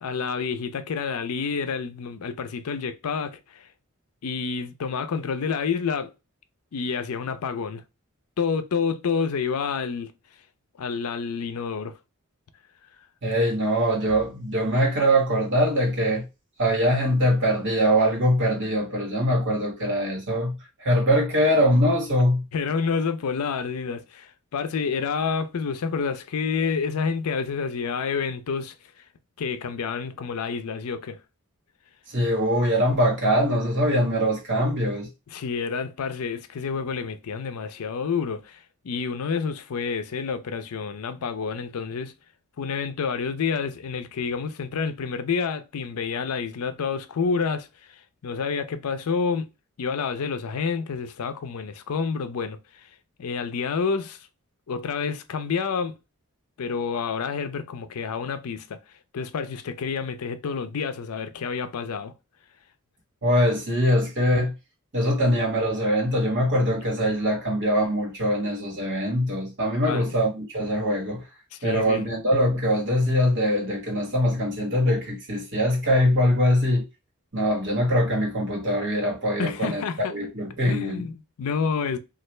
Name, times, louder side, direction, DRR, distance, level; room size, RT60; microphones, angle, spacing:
voice 1, 0.0-3.7 4.2-6.1 6.7-7.8 8.4-10.1 10.8-11.9 22.5-28.7 29.4-31.2 35.3-38.6 38.8-42.1 42.6-47.7 48.2-49.5 49.8-52.6 53.2-54.2 54.7-55.9 56.6-58.8 59.1-62.1 69.9-70.0 71.5-72.1 79.4-80.2 80.7-82.0, left 5 dB, 80° left, 0.5 m, -28 dB
voice 2, 13.2-16.2 16.6-20.5 20.8-22.4 32.1-35.1 63.2-64.5 64.9-71.2 71.6-76.8 77.3-81.0, equal, 55° right, 1.3 m, -22 dB
3.2 x 2.4 x 3.1 m
head